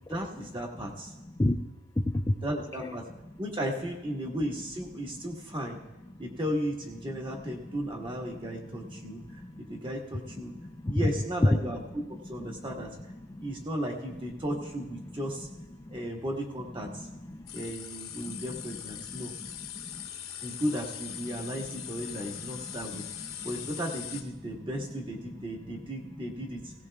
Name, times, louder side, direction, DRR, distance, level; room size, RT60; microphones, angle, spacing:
voice 1, 0.1-1.1 2.4-3.0 3.4-5.8 6.2-9.4 9.7-10.5 10.9-11.8 12.2-13.0 13.4-15.5 15.9-17.1 17.5-19.3 20.4-23.0 23.4-26.7, equal, 25° right, 0 dB, 1.5 m, -35 dB
voice 2, 2.0-2.5 2.8-2.9 7.3-7.4 8.4-9.6 10.6-11.0 12.5-12.7 13.3-13.5 15.8-15.9 17.0-17.6 18.3-18.4 19.1-19.3 19.7-20.1 22.3-23.5, left 1 dB, 15° left, 2 dB, 0.4 m, -34 dB
sound 1, 17.5-24.2, left 10 dB, 80° left, 0.9 m, -41 dB
18.0 x 17.0 x 2.4 m, 1.1 s
head